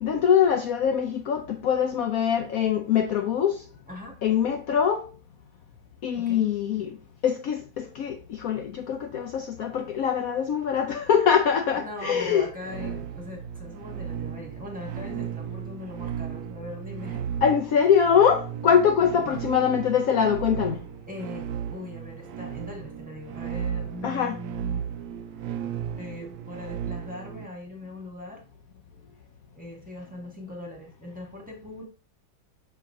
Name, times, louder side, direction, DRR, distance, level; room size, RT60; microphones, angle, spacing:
voice 1, 0.0-3.6 4.2-5.1 6.0-7.0 7.2-12.5 17.4-20.8 24.0-24.4, left 7 dB, 80° left, 0.7 m, -23 dB
voice 2, 3.9-4.2 6.2-6.5 11.7-17.5 19.0-19.4 21.1-24.8 25.9-28.4 29.5-31.8, left 1 dB, 5° right, 1.5 m, -40 dB
sound 1, 12.6-27.5, right 9 dB, 80° right, 0.8 m, -35 dB
6.4 x 6.0 x 2.5 m
omnidirectional pair, 2.1 m